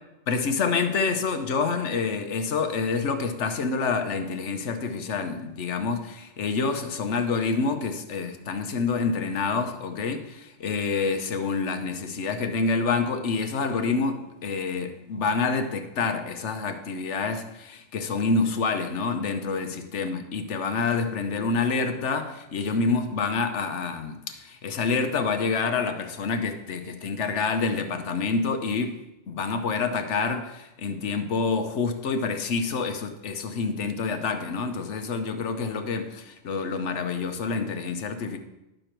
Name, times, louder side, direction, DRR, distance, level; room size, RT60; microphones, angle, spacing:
voice 1, 0.3-29.0 29.3-38.4, left 4 dB, 75° left, 7 dB, 1.2 m, -27 dB
11.5 x 6.6 x 4.4 m, 0.94 s
omnidirectional pair, 1.2 m